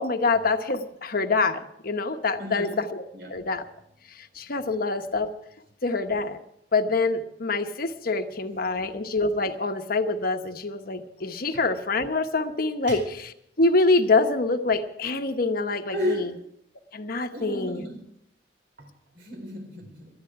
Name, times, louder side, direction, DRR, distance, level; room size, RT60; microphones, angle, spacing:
voice 1, 0.0-3.0 3.3-3.7 4.2-5.3 5.8-6.4 6.7-13.3 13.6-16.3 16.9-17.8, left 3 dB, 55° left, 7 dB, 1.0 m, -25 dB
voice 2, 2.4-2.8 3.1-3.3 11.5-11.6 12.9-13.0 15.9-16.3 17.3-18.0 18.8-20.1, equal, 65° right, 4 dB, 4.5 m, -33 dB
18.5 x 12.5 x 4.7 m, 0.77 s
head